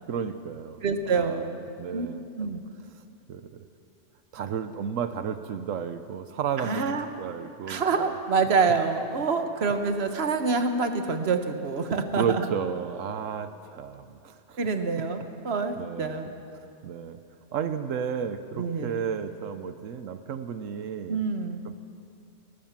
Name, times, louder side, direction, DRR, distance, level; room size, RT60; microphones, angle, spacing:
voice 1, 0.1-2.6 3.3-3.4 4.3-8.1 12.1-14.6 15.8-16.3 16.8-17.2 17.5-21.2, right 7 dB, 90° right, 10 dB, 1.2 m, -33 dB
voice 2, 0.8-1.5 1.9-2.1 2.4-2.6 6.6-7.1 7.7-12.4 14.6-16.3 18.6-19.0 21.1-21.7, right 4 dB, 55° right, 7 dB, 1.5 m, -26 dB
19.5 x 18.5 x 7.4 m, 2.6 s
omnidirectional pair, 1.3 m